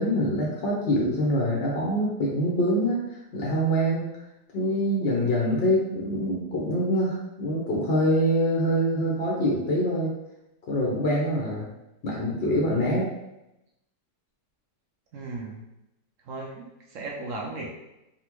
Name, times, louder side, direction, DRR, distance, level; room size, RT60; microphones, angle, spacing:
voice 1, 0.0-4.1 4.5-10.1 10.7-11.7 12.0-13.1, equal, 70° left, -4 dB, 0.6 m, -25 dB
voice 2, 15.1-15.6 16.3-16.6 16.9-17.7, right 2 dB, 65° right, -1 dB, 0.8 m, -35 dB
4.0 x 2.1 x 2.9 m, 0.90 s
omnidirectional pair, 1.8 m